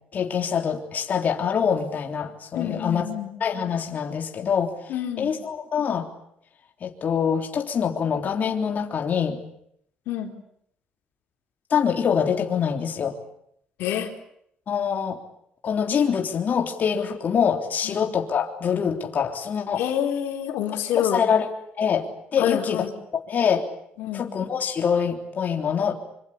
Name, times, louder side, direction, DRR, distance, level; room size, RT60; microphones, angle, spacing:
voice 1, 0.1-3.1 3.4-4.7 5.2-6.1 6.8-9.4 11.7-13.2 14.7-15.2 15.6-19.8 20.9-21.5 21.8-22.9 23.3-23.6 24.1-25.9, left 7 dB, 50° left, 3 dB, 3.5 m, -24 dB
voice 2, 2.5-3.3 4.9-5.3 10.1-10.3 13.8-14.1 17.8-18.0 19.8-21.2 22.4-22.9 24.0-24.2, left 10 dB, 85° left, 4 dB, 4.1 m, -27 dB
25.5 x 25.0 x 8.6 m, 0.72 s
cardioid pair, 100°, 4 cm